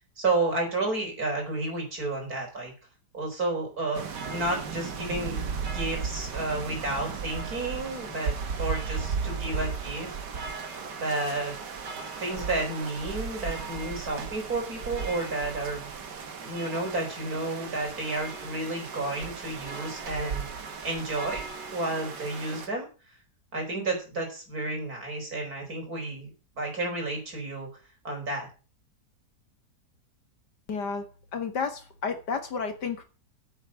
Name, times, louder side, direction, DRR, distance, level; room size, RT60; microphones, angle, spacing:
voice 1, 0.2-2.7 3.1-10.1 11.0-11.6 12.2-15.9 16.4-20.5 20.8-21.5 21.7-22.9 23.5-26.3 26.6-27.7 28.0-28.5, right 2 dB, 60° right, 1 dB, 5.6 m, -31 dB
sound 1, 3.9-22.7, right 5 dB, 75° right, 2.2 m, -36 dB
voice 2, 30.7-31.1 31.3-33.0, left 5 dB, 75° left, 7 dB, 2.5 m, -31 dB
9.0 x 7.9 x 7.5 m, 0.33 s
omnidirectional pair, 1.8 m